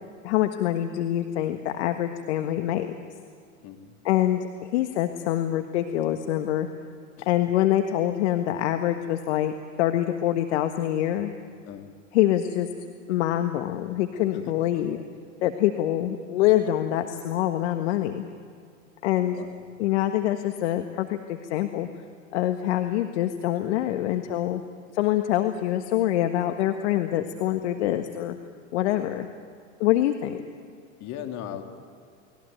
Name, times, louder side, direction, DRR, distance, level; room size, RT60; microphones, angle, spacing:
voice 1, 0.2-2.9 4.0-6.7 7.3-11.3 12.1-12.7 13.1-15.0 15.4-18.2 19.0-19.4 19.8-21.9 22.3-24.6 24.9-28.4 28.7-29.3 29.8-30.4, left 12 dB, 60° left, 7 dB, 1.6 m, -25 dB
voice 2, 3.6-3.9 7.2-7.3 11.7-12.0 14.4-15.0 19.2-19.5 31.0-31.6, left 10 dB, 45° left, 4 dB, 3.3 m, -39 dB
30.0 x 21.0 x 9.3 m, 2.3 s
hypercardioid pair, 95°, 39 cm